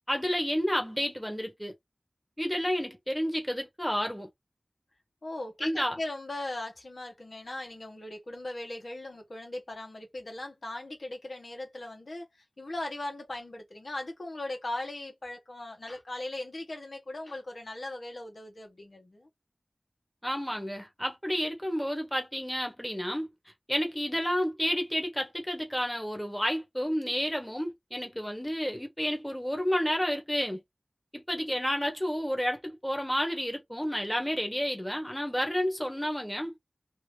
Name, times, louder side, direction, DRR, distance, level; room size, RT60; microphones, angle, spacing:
voice 1, 0.1-1.7 2.4-4.3 5.6-6.0 20.2-23.3 23.7-30.6 31.1-36.6, equal, 10° left, 1.3 m, -30 dB
voice 2, 5.2-19.3, left 2 dB, 80° left, 1.4 m, -39 dB
2.9 x 2.8 x 3.4 m
wide cardioid pair, 60°, 0 cm